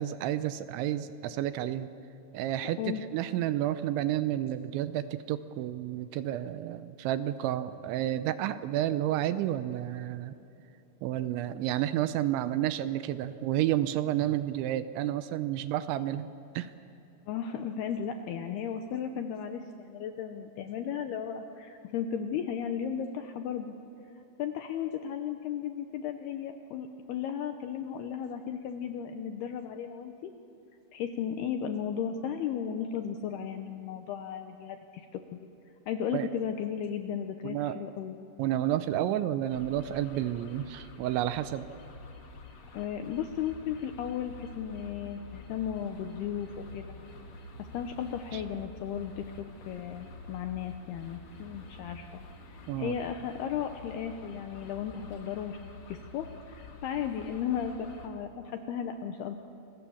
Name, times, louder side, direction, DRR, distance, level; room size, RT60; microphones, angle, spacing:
voice 1, 0.0-1.9 2.3-10.3 11.0-16.3 16.6-16.7 36.1-36.3 37.4-37.8 38.4-41.7 48.3-48.4 52.7-53.0, right 12 dB, 80° right, 12 dB, 2.8 m, -30 dB
voice 2, 17.3-23.7 24.4-30.3 30.9-35.5 35.9-38.2 42.7-47.0 47.7-55.6 55.9-59.4, left 8 dB, 80° left, 6 dB, 2.4 m, -35 dB
sound 1, 39.5-58.1, left 3 dB, 50° left, 2.3 m, -48 dB
29.0 x 23.0 x 7.1 m, 2.9 s
omnidirectional pair, 5.7 m